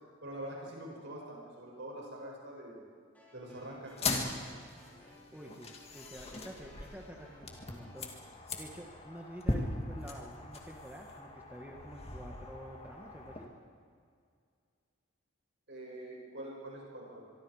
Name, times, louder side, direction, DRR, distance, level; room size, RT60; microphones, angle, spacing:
voice 1, 0.2-2.8 3.3-4.0 15.7-17.2, right 1 dB, 55° right, -2 dB, 7.4 m, -44 dB
sound 1, 3.1-8.1, left 2 dB, 10° left, 7.5 m, -59 dB
sound 2, 3.9-13.5, left 2 dB, 30° left, 2.3 m, -40 dB
voice 2, 5.1-8.1 8.6-13.5, equal, 10° right, 0 dB, 1.5 m, -49 dB
24.5 x 24.0 x 5.0 m, 2.2 s
head